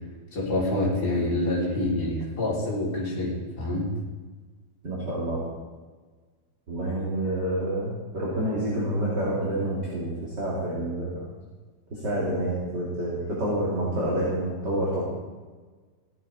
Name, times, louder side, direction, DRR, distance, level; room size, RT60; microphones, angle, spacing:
voice 1, 0.3-3.9, left 1 dB, 25° left, -7 dB, 4.1 m, -27 dB
voice 2, 4.8-5.4 6.7-11.3 12.0-15.0, right 1 dB, 30° right, -6 dB, 2.7 m, -28 dB
16.0 x 10.5 x 4.2 m, 1.4 s
omnidirectional pair, 4.7 m